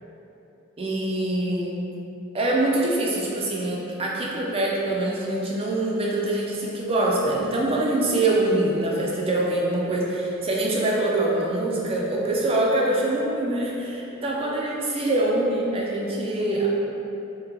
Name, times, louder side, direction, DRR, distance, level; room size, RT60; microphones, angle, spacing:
voice 1, 0.8-1.9 2.3-16.7, right 2 dB, 25° right, -3 dB, 0.4 m, -24 dB
3.1 x 2.8 x 3.5 m, 3.0 s
head